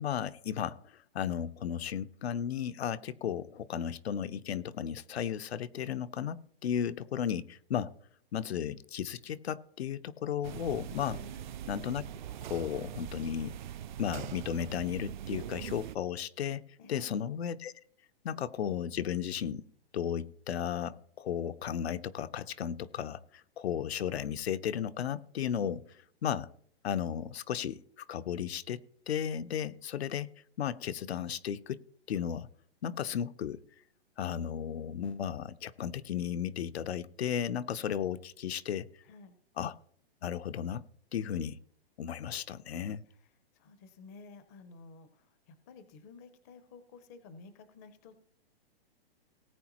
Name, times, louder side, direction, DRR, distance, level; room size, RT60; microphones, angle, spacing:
voice 1, 0.0-7.9 8.3-11.2 11.7-12.0 12.4-13.5 14.0-16.6 16.9-17.7 18.2-19.6 19.9-26.5 26.8-30.3 30.6-31.8 32.1-32.5 32.8-33.6 34.2-38.9 39.6-39.7 40.2-40.8 41.1-41.6 42.0-43.0, left 9 dB, 90° left, 0.7 m, -34 dB
sound 1, 10.4-16.0, right 10 dB, 50° right, 0.4 m, -42 dB
voice 2, 11.2-11.5 16.8-17.2 39.0-39.4 43.1-48.3, left 4 dB, 15° left, 0.4 m, -53 dB
18.5 x 8.4 x 2.9 m
hypercardioid pair, 160°, 31 cm